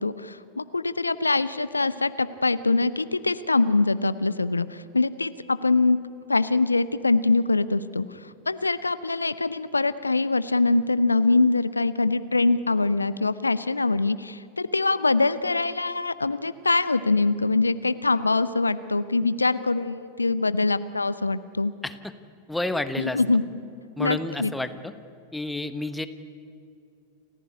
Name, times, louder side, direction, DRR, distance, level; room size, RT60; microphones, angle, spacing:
voice 1, 0.0-6.0 6.3-21.7 23.0-23.4 24.0-24.5, left 3 dB, 80° left, 15 dB, 0.7 m, -23 dB
voice 2, 22.5-23.2 24.0-24.9 25.3-26.1, left 2 dB, 5° left, 11 dB, 1.3 m, -30 dB
29.5 x 15.0 x 9.7 m, 2.6 s
figure-of-eight pair, 90°, 0 cm